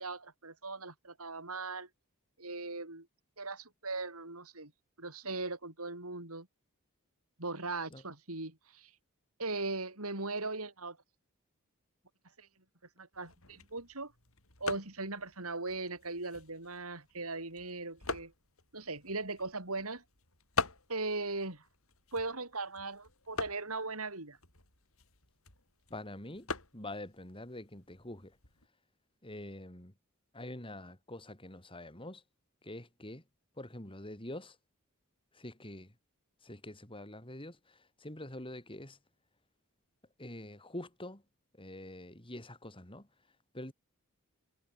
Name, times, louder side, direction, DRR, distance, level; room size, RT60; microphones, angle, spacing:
voice 1, 0.0-1.9 2.4-3.1 3.4-4.7 5.0-6.5 7.4-8.9 9.4-11.0 12.4-12.5 13.0-14.1 14.6-18.3 18.7-20.0 20.9-21.6 22.1-24.4, right 3 dB, 75° right, 6.2 m, -39 dB
sound 1, 13.1-28.7, left 4 dB, 65° left, 7.1 m, -44 dB
voice 2, 25.9-28.4 29.2-29.9 30.3-32.2 32.6-33.2 33.6-34.6 35.3-35.9 36.4-39.0 40.2-41.2 41.6-43.1 43.5-43.7, left 1 dB, 25° left, 5.0 m, -45 dB
head